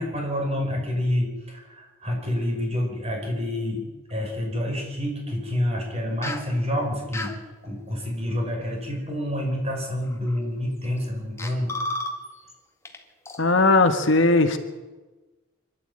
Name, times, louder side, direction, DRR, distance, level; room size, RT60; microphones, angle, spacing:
voice 1, 0.0-7.3 7.6-11.7, left 1 dB, 30° right, 1 dB, 5.6 m, -28 dB
sound 1, 6.2-6.5 7.1-7.4 9.1-9.2 10.1-10.4 11.0-11.1 11.4-12.5 12.8-13.0 13.3-13.4, left 2 dB, 15° left, 1.7 m, -32 dB
voice 2, 13.4-14.6, left 3 dB, 60° left, 7 dB, 1.7 m, -18 dB
25.5 x 12.0 x 9.0 m, 1.2 s
head